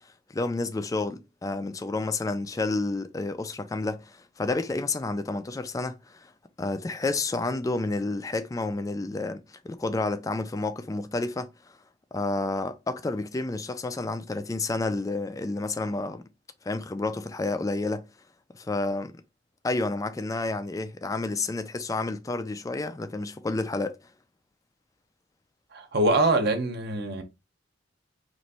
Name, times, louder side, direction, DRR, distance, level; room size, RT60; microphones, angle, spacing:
voice 1, 0.3-6.3 6.6-11.5 12.1-16.2 16.6-18.1 18.5-19.1 19.6-24.0, left 2 dB, 15° left, 0.3 m, -30 dB
voice 2, 25.7-27.2, right 2 dB, 55° right, 0.8 m, -24 dB
3.0 x 2.6 x 4.1 m
head